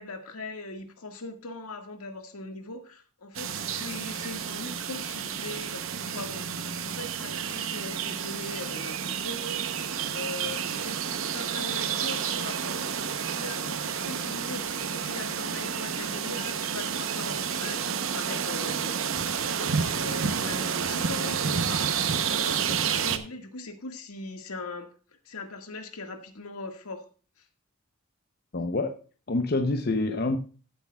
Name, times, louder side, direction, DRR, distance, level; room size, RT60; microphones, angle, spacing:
voice 1, 0.0-11.0 11.3-12.8 13.4-18.9 19.5-27.1 27.4-27.5, left 2 dB, 85° left, 1.8 m, -40 dB
sound 1, 3.3-23.2, right 7 dB, 65° right, 0.8 m, -30 dB
voice 2, 28.5-29.0 29.3-30.4, left 2 dB, 45° left, 0.7 m, -26 dB
15.0 x 8.4 x 2.3 m
head